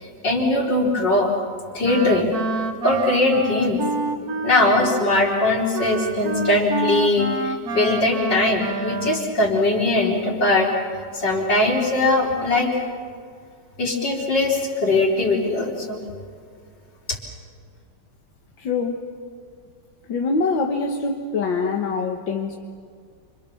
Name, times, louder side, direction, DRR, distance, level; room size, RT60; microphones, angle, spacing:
voice 1, 0.2-1.3 1.7-2.3 2.8-3.8 4.4-10.7 11.1-12.8 13.8-16.0, left 2 dB, 70° left, -1 dB, 4.8 m, -20 dB
Wind instrument woodwind instrument, 1.8-9.4, right 3 dB, 55° right, 1.8 m, -28 dB
voice 2, 18.6-19.1 20.1-22.6, left 4 dB, 90° left, 2 dB, 2.2 m, -24 dB
30.0 x 27.0 x 7.1 m, 2.1 s
omnidirectional pair, 2.0 m